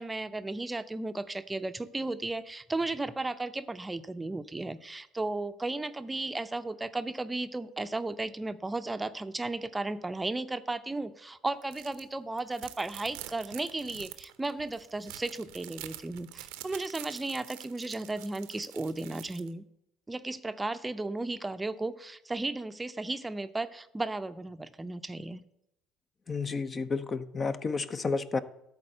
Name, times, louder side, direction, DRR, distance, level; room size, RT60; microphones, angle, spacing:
voice 1, 0.0-19.6 20.1-25.4, right 2 dB, 15° right, 11 dB, 0.6 m, -35 dB
sound 1, 11.6-12.0 12.4-19.5, right 15 dB, 75° right, 0.7 m, -46 dB
voice 2, 26.3-28.4, left 4 dB, 35° left, 12 dB, 0.7 m, -31 dB
12.5 x 4.2 x 7.7 m, 0.83 s
hypercardioid pair, 65°, 0 cm